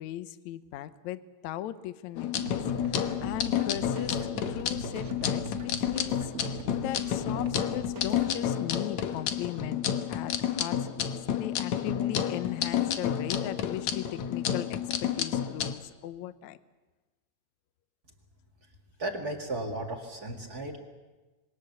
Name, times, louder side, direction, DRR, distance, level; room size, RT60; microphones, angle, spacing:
voice 1, 0.0-2.6 2.8-4.2 4.5-6.6 6.8-9.8 10.1-16.6 20.4-20.6, left 13 dB, 85° left, 12 dB, 1.6 m, -38 dB
sound 1, 2.2-15.7, left 9 dB, 65° left, 1.8 m, -30 dB
sound 2, 2.3-8.3, right 3 dB, 65° right, 0.8 m, -41 dB
voice 2, 19.0-20.8, right 1 dB, 35° right, 2 dB, 1.7 m, -35 dB
26.0 x 23.0 x 6.8 m, 1.2 s
omnidirectional pair, 4.5 m